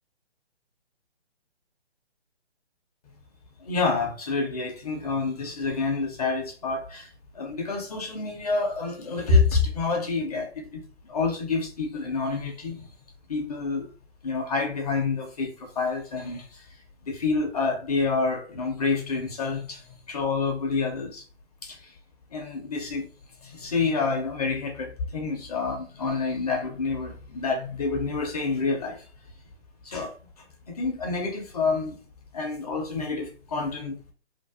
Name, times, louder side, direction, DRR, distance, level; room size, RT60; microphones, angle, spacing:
voice 1, 3.6-12.9 13.3-13.9 14.2-16.8 17.1-21.2 21.6-22.0 22.3-23.1 23.4-29.1 29.8-32.0 32.3-34.0, left 4 dB, 35° left, 0.6 m, -28 dB
2.5 x 2.2 x 2.3 m
figure-of-eight pair, 140°, 33 cm